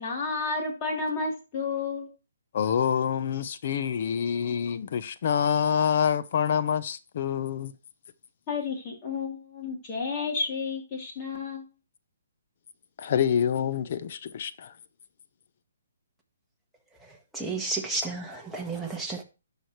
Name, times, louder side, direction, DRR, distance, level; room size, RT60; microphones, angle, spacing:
voice 1, 0.0-2.1 8.5-11.6, left 4 dB, 30° left, 3.2 m, -31 dB
voice 2, 2.5-7.7 13.0-14.7, left 8 dB, 50° left, 0.7 m, -26 dB
voice 3, 17.3-19.2, right 3 dB, 5° right, 1.4 m, -32 dB
12.5 x 4.9 x 3.1 m
hypercardioid pair, 155°, 0 cm